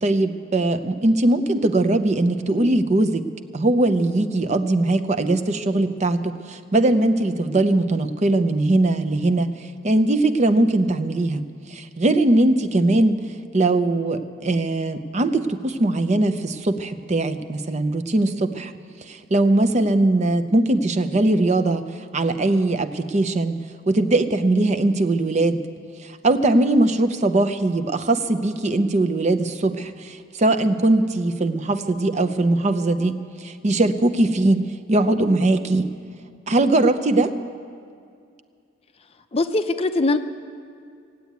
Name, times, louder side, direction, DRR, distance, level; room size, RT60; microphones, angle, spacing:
voice 1, 0.0-3.2 3.5-9.5 9.8-11.4 11.7-13.2 13.5-18.7 19.1-21.8 22.1-23.5 23.9-25.6 26.0-33.2 33.4-35.9 36.5-37.3, right 2 dB, 35° right, 9 dB, 0.6 m, -20 dB
voice 2, 39.3-40.2, left 2 dB, 30° left, 8 dB, 0.5 m, -21 dB
16.0 x 8.1 x 9.3 m, 2.3 s
head